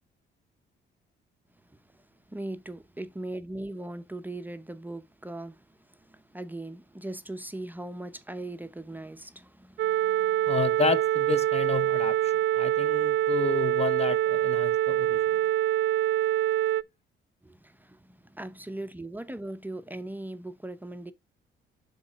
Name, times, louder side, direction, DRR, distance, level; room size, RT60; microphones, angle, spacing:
voice 1, 1.6-10.6 17.4-21.1, right 1 dB, 10° right, 0.7 m, -40 dB
sound 1, 9.8-16.8, right 13 dB, 65° right, 0.5 m, -25 dB
voice 2, 10.5-15.2, left 5 dB, 30° left, 0.7 m, -31 dB
7.0 x 3.8 x 5.1 m
cardioid pair, 90°, 20 cm